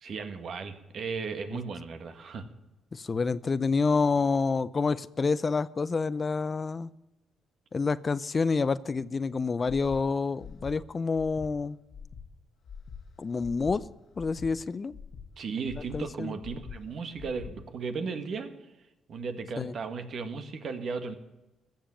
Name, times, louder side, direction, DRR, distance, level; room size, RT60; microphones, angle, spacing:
voice 1, 0.0-2.5 15.4-18.5 19.1-21.1, right 5 dB, 60° right, 8 dB, 1.7 m, -35 dB
voice 2, 2.9-6.9 7.7-11.8 13.2-13.8 14.2-14.9 15.9-16.3 19.6-19.8, left 4 dB, 35° left, 17 dB, 0.5 m, -28 dB
Breathing, 9.9-10.0 10.4-10.7 11.1-11.5 11.9-12.2 12.6-13.0 13.4-13.7 14.1-14.5 14.9-15.3 15.6-16.0 16.4-16.8 17.1-17.5, left 6 dB, 60° left, 1.5 m, -43 dB
15.0 x 7.4 x 8.9 m, 0.98 s
cardioid pair, 90°, 0 cm